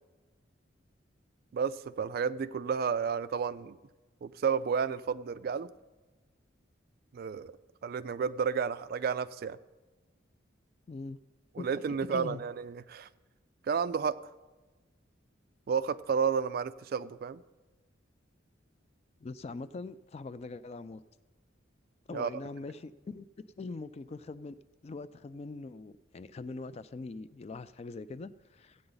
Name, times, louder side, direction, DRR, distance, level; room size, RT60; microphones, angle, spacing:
voice 1, 1.5-3.8 4.2-5.7 7.1-7.5 7.8-9.6 11.6-13.1 13.7-14.2 15.7-17.4 22.1-22.3, right 6 dB, 50° right, 15 dB, 0.3 m, -31 dB
voice 2, 10.9-11.2 11.6-11.7 12.0-12.4 19.2-21.0 22.1-23.3 23.6-24.6 24.8-28.8, left 3 dB, 30° left, 14 dB, 0.3 m, -42 dB
15.0 x 8.7 x 3.9 m, 1.2 s
head